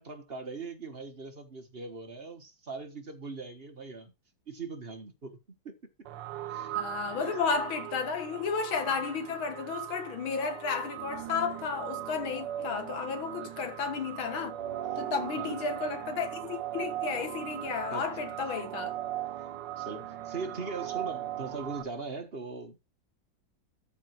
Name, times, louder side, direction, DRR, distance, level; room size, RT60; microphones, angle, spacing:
voice 1, 0.0-4.1 4.5-5.4 5.6-5.7 6.5-6.8 7.1-7.3 13.3-13.5 15.4-15.6 17.9-18.0 19.4-19.5 19.8-22.8, right 4 dB, 35° right, 1.3 m, -40 dB
sound 1, 6.1-21.8, right 12 dB, 70° right, 1.4 m, -38 dB
voice 2, 6.7-14.6 15.0-18.9, left 5 dB, 85° left, 2.3 m, -33 dB
13.0 x 4.7 x 4.5 m
omnidirectional pair, 2.1 m